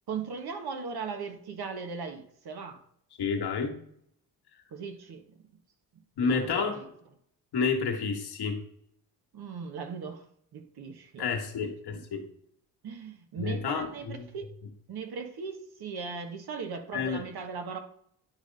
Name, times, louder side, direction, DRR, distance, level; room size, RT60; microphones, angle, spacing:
voice 1, 0.1-2.8 4.7-5.2 6.2-6.9 9.3-10.3 10.5-11.3 11.6-12.0 12.8-14.5 14.9-17.8, right 5 dB, 55° right, 6 dB, 1.4 m, -38 dB
voice 2, 3.2-3.8 6.2-6.8 7.5-8.6 11.2-12.2 13.4-14.3 16.9-17.2, left 5 dB, 60° left, 3 dB, 1.8 m, -29 dB
10.0 x 3.5 x 5.4 m, 0.67 s
cardioid pair, 85°, 44 cm